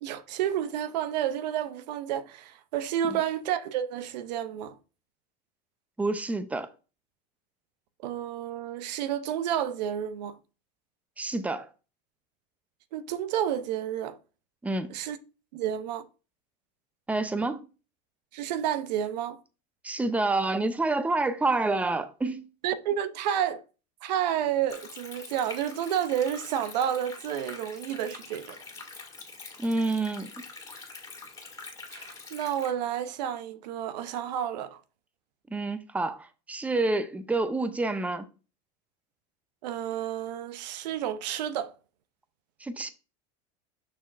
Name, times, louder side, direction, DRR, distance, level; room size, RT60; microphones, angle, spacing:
voice 1, 0.0-4.8 8.0-10.4 12.9-14.2 14.9-15.2 15.5-16.0 18.3-19.4 22.6-23.6 24.0-28.6 31.9-34.8 39.6-41.7, right 10 dB, 90° right, 0.7 m, -30 dB
voice 2, 6.0-6.7 11.2-11.7 14.6-14.9 17.1-17.7 19.8-22.5 29.6-30.3 35.5-38.3 42.6-42.9, right 2 dB, 5° right, 0.6 m, -28 dB
Stream, 24.7-32.7, left 3 dB, 15° left, 2.0 m, -45 dB
6.9 x 6.2 x 2.5 m
supercardioid pair, 120°, 21 cm